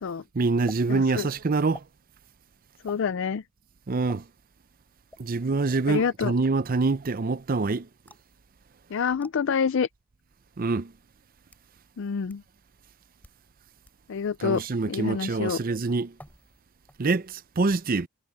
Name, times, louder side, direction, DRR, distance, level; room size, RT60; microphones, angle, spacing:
voice 1, 0.3-1.9 3.9-4.3 5.2-7.9 10.6-10.9 14.4-16.2 17.0-18.1, right 3 dB, 40° right, 0.5 m, -25 dB
sound 1, 0.7-0.8 1.7-1.9 2.9-3.1 4.1-4.2 5.1-5.4 8.1-8.3 9.2-9.3 10.3-10.4 11.2-11.7 12.3-12.4 13.1-13.4 13.8-14.0 14.5-14.7 16.2-16.6 16.9-17.3, left 1 dB, 5° left, 6.3 m, -48 dB
voice 2, 0.9-1.3 2.8-3.4 5.9-6.3 8.9-9.9 12.0-12.4 14.1-14.6 14.9-15.6, left 6 dB, 60° left, 0.4 m, -27 dB
head